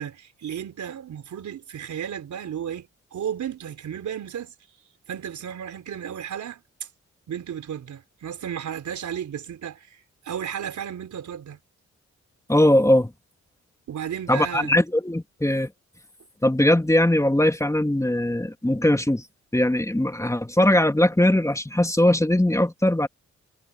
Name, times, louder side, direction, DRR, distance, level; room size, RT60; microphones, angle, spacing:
voice 1, 0.0-4.5 5.1-6.9 7.3-11.6 13.9-14.8, right 9 dB, 70° right, 4.1 m, -34 dB
voice 2, 12.5-13.1 14.3-15.7 16.4-19.2 19.5-23.1, left 1 dB, 10° left, 2.8 m, -20 dB
supercardioid pair, 55°, 30 cm